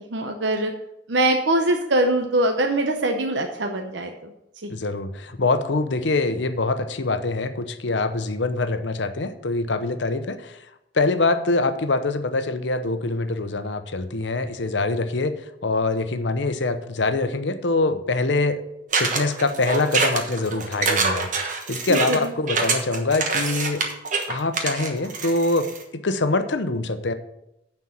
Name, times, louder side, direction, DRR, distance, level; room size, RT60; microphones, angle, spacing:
voice 1, 0.1-0.7 1.1-4.3 4.6-4.7 21.9-22.2, right 1 dB, 75° right, 4 dB, 0.8 m, -22 dB
voice 2, 4.7-10.6 10.9-15.3 15.6-18.6 19.0-23.8 24.3-25.7 25.9-27.1, left 3 dB, 80° left, 10 dB, 0.8 m, -24 dB
sound 1, 18.9-25.8, right 4 dB, 45° right, 1.2 m, -25 dB
9.5 x 4.5 x 7.2 m, 0.84 s
head